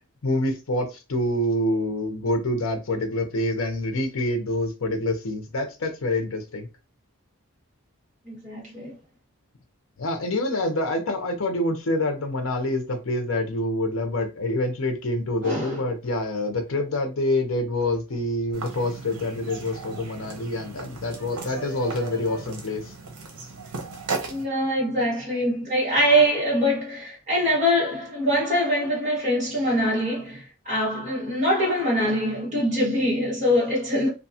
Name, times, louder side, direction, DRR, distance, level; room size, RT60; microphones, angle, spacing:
voice 1, 0.2-6.7 10.0-22.9, left 1 dB, 65° left, 0.6 m, -26 dB
voice 2, 8.2-8.9 15.4-15.8 21.2-22.4 24.2-34.1, equal, 30° right, 1.3 m, -24 dB
sound 1, 18.5-24.4, right 3 dB, 85° right, 0.8 m, -36 dB
2.7 x 2.3 x 2.7 m
head